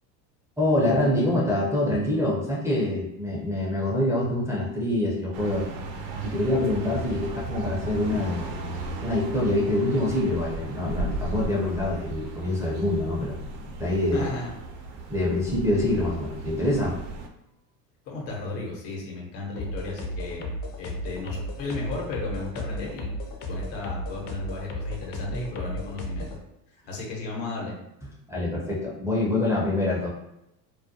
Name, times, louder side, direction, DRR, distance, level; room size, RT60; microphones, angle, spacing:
voice 1, 0.6-5.7 6.2-8.5 9.0-13.4 13.8-14.3 15.1-17.0 28.3-30.1, left 1 dB, 5° right, -6 dB, 0.4 m, -25 dB
sound 1, 5.3-17.3, right 2 dB, 65° right, 0.6 m, -35 dB
voice 2, 14.1-14.5 18.1-20.5 20.8-23.1 23.5-26.4 26.9-27.7, left 3 dB, 80° left, -2 dB, 1.0 m, -34 dB
sound 2, 19.6-26.4, left 1 dB, 55° left, 0.6 m, -34 dB
2.3 x 2.1 x 2.7 m, 0.85 s
hypercardioid pair, 90°, 49 cm